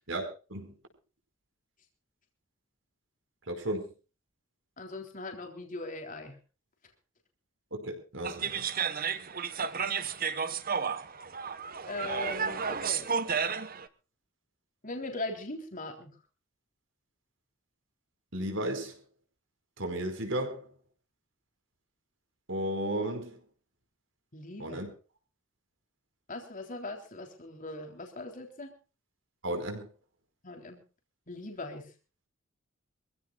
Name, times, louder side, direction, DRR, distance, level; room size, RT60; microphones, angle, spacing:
voice 1, 0.1-0.7 3.5-3.8 7.7-8.7 18.3-18.9 19.8-20.7 22.5-23.3 24.6-24.9 29.4-29.9, right 1 dB, 70° right, 5 dB, 5.0 m, -34 dB
voice 2, 4.8-6.4 11.9-13.1 14.8-16.1 24.3-24.8 26.3-28.7 30.4-30.8 31.3-31.9, left 2 dB, 40° left, 4 dB, 3.6 m, -40 dB
sound 1, 8.2-13.9, right 6 dB, 45° right, 1.2 m, -32 dB
25.5 x 16.0 x 2.4 m, 0.35 s
head